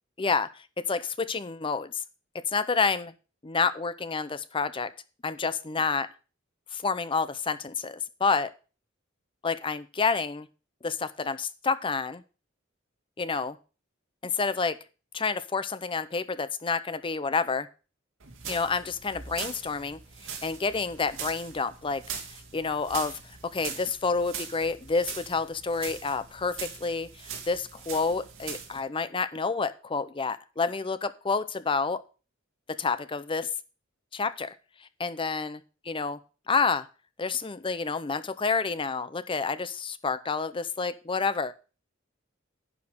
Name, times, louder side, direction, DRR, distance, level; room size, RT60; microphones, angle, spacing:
voice 1, 0.2-0.5 0.9-1.9 2.5-3.1 3.4-4.9 5.2-6.1 6.7-8.5 9.4-10.5 10.8-12.2 13.2-13.6 14.2-14.8 15.1-17.7 18.4-20.0 20.4-22.0 22.5-23.1 23.5-32.0 32.8-33.5 34.1-34.5 35.0-35.6 35.9-36.2 36.5-36.8 37.2-41.5, left 4 dB, 25° left, 14 dB, 0.5 m, -29 dB
sound 1, 18.2-28.8, right 7 dB, 75° right, 2.1 m, -41 dB
10.5 x 5.0 x 6.7 m, 0.35 s
head